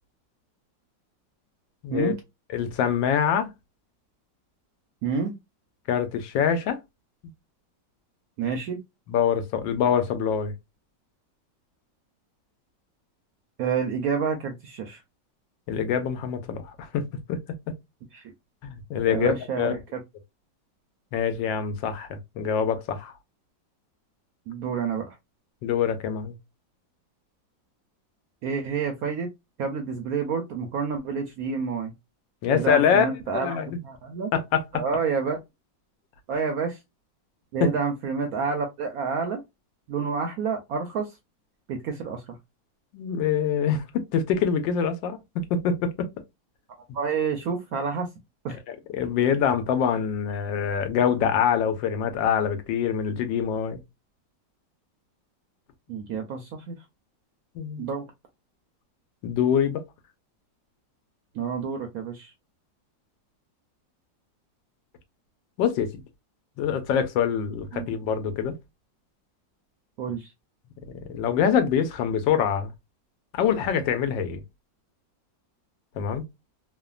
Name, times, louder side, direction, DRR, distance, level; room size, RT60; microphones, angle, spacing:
voice 1, 1.8-2.2 2.5-3.5 5.9-6.8 9.1-10.5 15.7-17.4 18.6-19.8 21.1-23.1 25.6-26.3 32.4-33.1 33.3-33.8 34.3-34.8 37.6-37.7 42.9-46.1 48.7-53.8 57.5-57.9 59.2-59.8 65.6-65.9 66.6-68.6 70.9-72.7 73.3-74.4 76.0-76.2, left 7 dB, 85° left, 1.3 m, -25 dB
voice 2, 5.0-5.4 8.4-8.8 13.6-15.0 18.1-18.2 19.0-20.0 24.5-25.2 28.4-29.3 29.6-31.9 32.5-33.6 33.8-34.3 34.7-35.4 36.3-36.8 37.5-39.4 39.9-41.1 41.7-42.4 46.9-48.1 48.4-48.6 55.9-56.8 57.8-58.1 61.3-62.3 67.7-67.9 70.0-70.3, right 5 dB, 75° right, 0.8 m, -29 dB
3.2 x 2.1 x 2.3 m
omnidirectional pair, 2.0 m